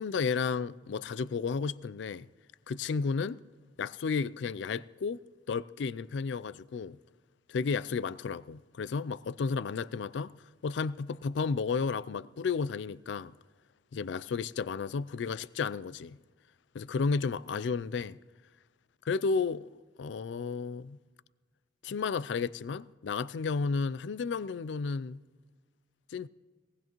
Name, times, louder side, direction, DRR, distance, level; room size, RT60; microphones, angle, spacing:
voice 1, 0.0-2.3 2.7-3.4 3.8-5.2 5.5-7.0 7.5-10.3 10.6-13.3 13.9-16.2 16.7-18.2 19.1-19.7 20.0-21.0 21.8-25.2 26.1-26.3, left 5 dB, 70° left, 0.4 m, -32 dB
20.0 x 18.0 x 3.0 m
head